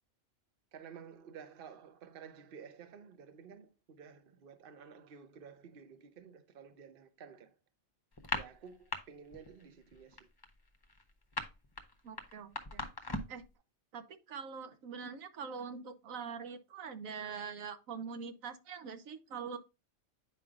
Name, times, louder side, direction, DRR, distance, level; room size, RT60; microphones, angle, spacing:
voice 1, 0.7-7.6 8.3-10.3, right 7 dB, 50° right, 0.9 m, -53 dB
sound 1, 8.1-9.0 9.3-9.6 9.9-13.4, left 2 dB, 25° left, 0.7 m, -39 dB
voice 2, 12.0-12.8 13.3-13.4 13.9-19.6, right 6 dB, 85° right, 1.3 m, -44 dB
9.0 x 5.4 x 2.4 m
omnidirectional pair, 1.4 m